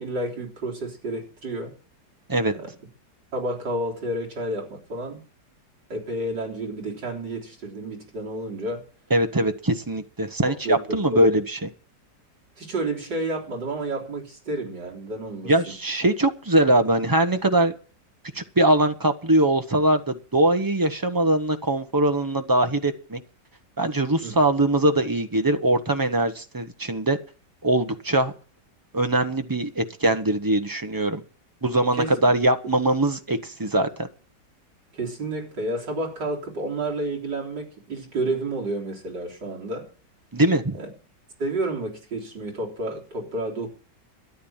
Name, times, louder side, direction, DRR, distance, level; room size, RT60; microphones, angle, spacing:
voice 1, 0.0-1.7 2.5-2.7 3.3-5.2 5.9-8.9 10.5-11.3 12.6-15.5 24.2-24.3 31.9-32.2 34.9-39.9 40.7-40.9 41.4-43.7, right 2 dB, 75° right, 4.1 m, -30 dB
voice 2, 9.1-11.6 15.4-17.7 18.3-23.2 23.8-27.2 27.6-28.3 28.9-31.2 31.6-34.1 40.3-40.8, right 1 dB, 15° right, 0.7 m, -22 dB
13.0 x 10.5 x 7.2 m
omnidirectional pair, 1.9 m